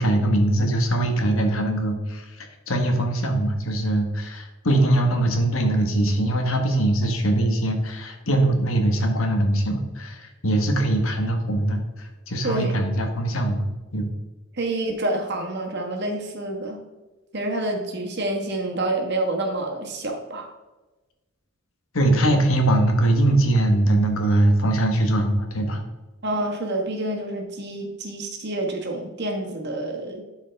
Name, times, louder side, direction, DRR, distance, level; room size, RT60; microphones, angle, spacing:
voice 1, 0.0-13.6 13.9-14.1 21.9-25.8, right 1 dB, 80° left, 4 dB, 1.4 m, -22 dB
voice 2, 14.6-16.8 17.3-20.5 26.2-30.2, right 2 dB, 55° right, 2 dB, 1.4 m, -28 dB
11.5 x 4.7 x 3.4 m, 1.1 s
head